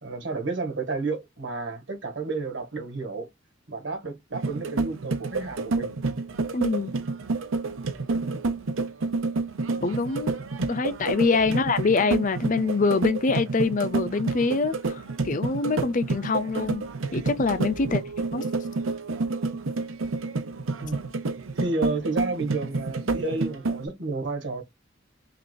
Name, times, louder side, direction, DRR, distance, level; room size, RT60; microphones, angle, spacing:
voice 1, 0.0-3.3 3.7-6.0 11.5-11.6 17.9-18.0 20.8-21.0 21.5-24.6, right 3 dB, 65° right, 1.6 m, -31 dB
sound 1, 4.3-23.8, right 3 dB, 85° right, 0.7 m, -29 dB
voice 2, 6.5-6.9 9.8-10.3 10.7-15.0 15.2-16.8 17.1-18.0 18.3-18.4, left 4 dB, 40° left, 0.5 m, -24 dB
5.8 x 2.5 x 2.2 m
head